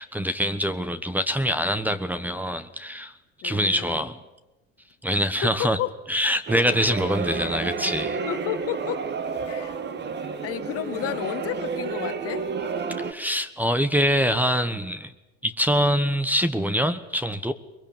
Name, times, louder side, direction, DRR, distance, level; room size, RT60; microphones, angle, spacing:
voice 1, 0.0-3.2 3.4-4.2 5.0-5.8 6.1-8.2 13.1-15.1 15.4-17.5, equal, 5° right, 11 dB, 1.2 m, -24 dB
voice 2, 3.4-4.0 5.4-5.9 8.3-9.0 9.5-9.7 10.3-12.5, left 12 dB, 50° left, 10 dB, 1.8 m, -31 dB
sound 1, 6.5-13.1, right 5 dB, 35° right, 1.9 m, -31 dB
22.5 x 22.0 x 8.9 m, 1.0 s
supercardioid pair, 105°, 30 cm